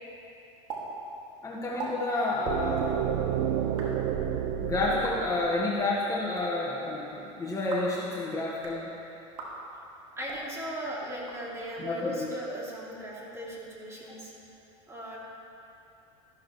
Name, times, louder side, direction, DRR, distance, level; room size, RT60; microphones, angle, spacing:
sound 1, 0.7-0.8 1.1-1.2 1.6-1.9 2.7-2.9 3.6-3.9 4.9-5.1 6.1-6.4 7.5-7.9 8.5-8.8 9.3-9.5 10.2-10.4 11.1-11.8, right 5 dB, 85° right, 2.2 m, -42 dB
voice 1, 1.4-3.2 4.6-8.9 11.8-12.1, left 2 dB, 20° left, -5 dB, 1.3 m, -30 dB
sound 2, 2.5-6.4, right 9 dB, 55° right, 0.6 m, -30 dB
voice 2, 10.2-14.3 14.9-15.2, equal, 15° right, -5 dB, 2.8 m, -37 dB
13.5 x 12.0 x 3.1 m, 2.8 s
supercardioid pair, 115°, 16 cm